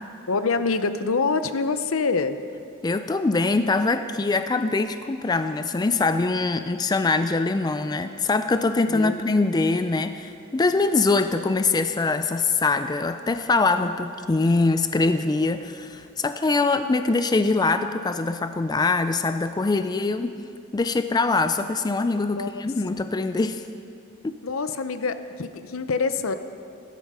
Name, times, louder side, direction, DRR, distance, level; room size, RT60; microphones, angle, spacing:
voice 1, 0.3-2.4 8.9-9.2 22.3-22.7 24.4-26.4, left 4 dB, 70° left, 11 dB, 0.7 m, -25 dB
voice 2, 2.8-20.3 20.7-23.6 24.2-24.4, left 3 dB, 20° left, 10 dB, 0.3 m, -23 dB
13.5 x 12.5 x 5.5 m, 2.5 s
head